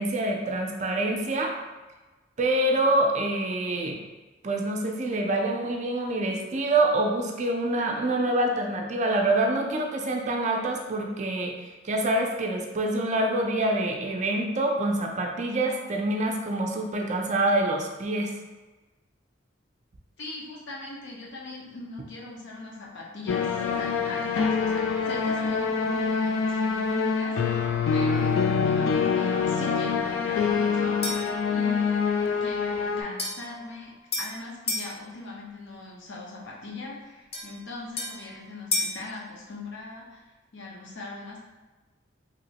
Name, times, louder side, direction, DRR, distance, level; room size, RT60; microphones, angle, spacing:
voice 1, 0.0-1.5 2.4-4.0 4.4-18.3, right 1 dB, 40° right, 1 dB, 0.4 m, -26 dB
voice 2, 20.2-41.4, left 2 dB, 65° left, -3 dB, 0.7 m, -40 dB
sound 1, 23.3-33.0, left 5 dB, 90° left, 0.3 m, -25 dB
sound 2, 31.0-31.4 33.2-34.9 37.3-39.0, left 2 dB, 30° left, 0.5 m, -33 dB
3.0 x 2.9 x 2.8 m, 1.2 s
head